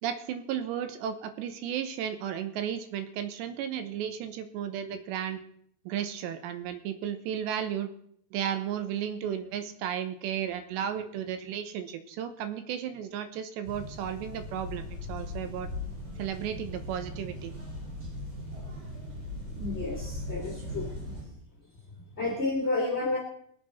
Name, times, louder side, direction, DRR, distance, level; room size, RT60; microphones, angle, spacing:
voice 1, 0.0-5.4 5.9-7.9 8.3-15.7 16.2-17.5, right 9 dB, 80° right, 9 dB, 3.2 m, -34 dB
sound 1, 13.6-21.2, left 1 dB, 40° right, 8.9 m, -39 dB
voice 2, 19.5-20.9 22.2-23.2, left 2 dB, 20° left, -2 dB, 1.7 m, -30 dB
23.5 x 8.1 x 4.3 m, 0.67 s
omnidirectional pair, 5.1 m